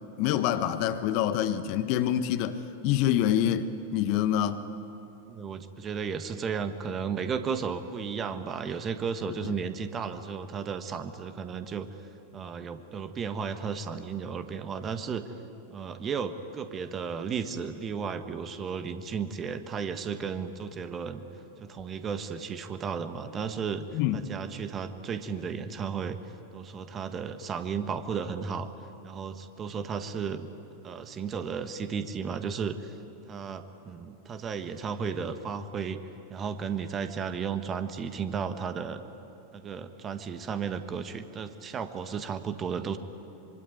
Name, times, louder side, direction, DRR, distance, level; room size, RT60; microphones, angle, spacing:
voice 1, 0.2-4.6 23.9-24.2, left 10 dB, 45° left, 1.2 m, -26 dB
voice 2, 5.3-11.9 12.3-15.2 15.7-21.2 21.6-26.2 26.5-28.7 29.0-30.5 30.8-32.9 33.3-36.0 36.3-39.0 39.5-43.0, right 6 dB, 25° right, 1.5 m, -34 dB
25.5 x 24.0 x 9.6 m
figure-of-eight pair, 90°, 0 cm